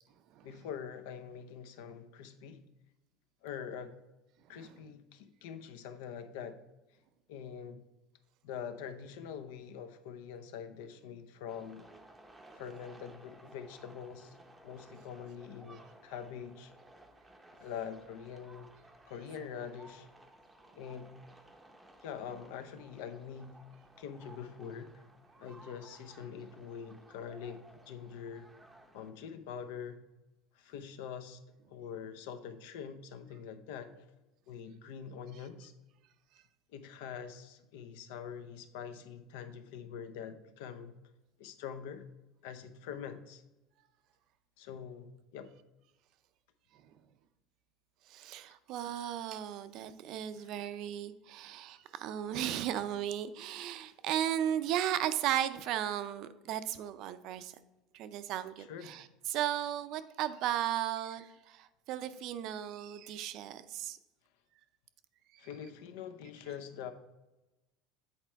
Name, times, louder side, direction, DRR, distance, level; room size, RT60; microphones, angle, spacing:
voice 1, 0.4-2.6 3.4-4.0 4.5-6.6 7.3-7.8 8.4-11.9 12.6-14.4 14.6-16.7 17.6-18.7 19.1-20.1 20.7-21.1 22.0-23.6 24.0-25.0 25.4-28.5 28.9-30.0 30.5-31.4 31.7-34.1 34.5-35.7 36.7-40.9 41.4-42.0 42.4-43.4 44.6-45.5 50.4-50.5 58.6-58.9 65.4-66.9, left 7 dB, 80° left, 0.7 m, -44 dB
sound 1, 11.5-29.1, right 1 dB, 5° right, 0.7 m, -58 dB
voice 2, 48.1-57.5 57.9-64.0, right 11 dB, 50° right, 0.5 m, -35 dB
8.3 x 4.3 x 4.5 m
cardioid pair, 160°, 0 cm